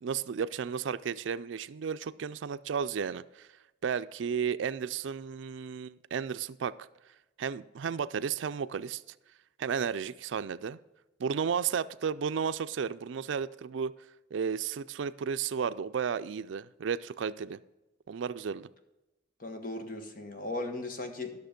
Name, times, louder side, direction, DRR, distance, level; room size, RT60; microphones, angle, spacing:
voice 1, 0.0-3.5 3.8-6.9 7.4-9.0 9.6-10.8 11.2-13.9 14.3-17.6 18.1-18.7, right 6 dB, 80° right, 0.4 m, -33 dB
voice 2, 19.4-21.4, left 2 dB, 45° left, 1.3 m, -37 dB
11.5 x 6.6 x 5.1 m
head